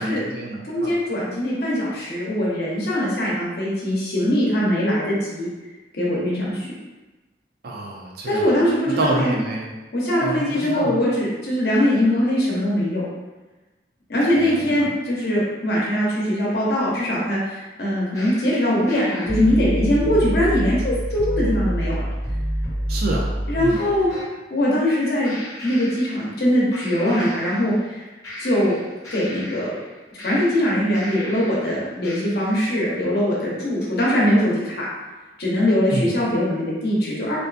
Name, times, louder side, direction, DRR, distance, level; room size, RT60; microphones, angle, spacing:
voice 1, 0.0-0.9 7.6-8.5 8.9-9.7 10.2-11.0 14.3-14.9 22.9-23.3 23.6-23.8 35.9-36.1, right 2 dB, 60° right, -1 dB, 0.4 m, -27 dB
voice 2, 0.6-5.5 5.9-6.7 8.3-9.3 9.9-13.0 14.1-21.9 23.5-24.1 24.5-25.3 25.6-28.0 28.4-28.8 29.1-29.7 30.2-34.8 35.4-37.4, left 1 dB, 60° left, -5 dB, 0.7 m, -21 dB
sound 1, 18.1-24.3 25.2-26.5 26.7-27.9 28.2-31.7 32.0-32.7, equal, 20° left, 0.7 m, -29 dB
2.5 x 2.3 x 2.4 m, 1.2 s
head